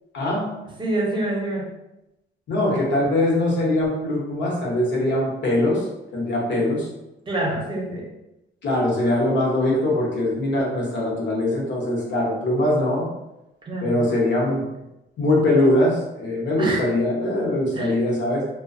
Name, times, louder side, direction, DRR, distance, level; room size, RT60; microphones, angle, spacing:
voice 1, 0.1-0.5 2.5-5.8 6.1-6.9 8.6-13.1 13.8-14.6 15.2-18.4, left 1 dB, 65° left, -3 dB, 1.0 m, -22 dB
voice 2, 0.8-1.7 7.3-8.1 13.7-14.1 16.6-16.9 17.7-17.9, right 2 dB, 25° right, -2 dB, 0.8 m, -26 dB
2.4 x 2.2 x 2.5 m, 0.92 s
cardioid pair, 90°, 20 cm